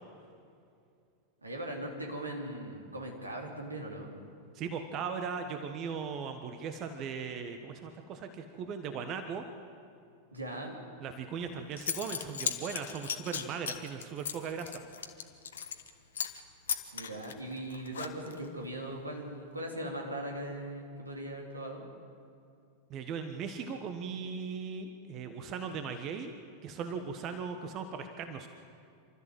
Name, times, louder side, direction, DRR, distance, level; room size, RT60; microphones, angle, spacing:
voice 1, 1.4-4.1 10.3-10.8 16.9-21.8, right 1 dB, 80° right, 0 dB, 3.4 m, -39 dB
voice 2, 4.5-9.4 11.0-14.8 22.9-26.3 26.6-28.5, right 6 dB, 35° right, 7 dB, 1.3 m, -38 dB
Zipper (clothing) / Coin (dropping), 11.4-11.5 11.8-15.9 16.2-16.4 16.7-18.5, left 8 dB, 65° left, 1.5 m, -36 dB
28.0 x 13.5 x 8.0 m, 2.5 s
figure-of-eight pair, 90°, 0 cm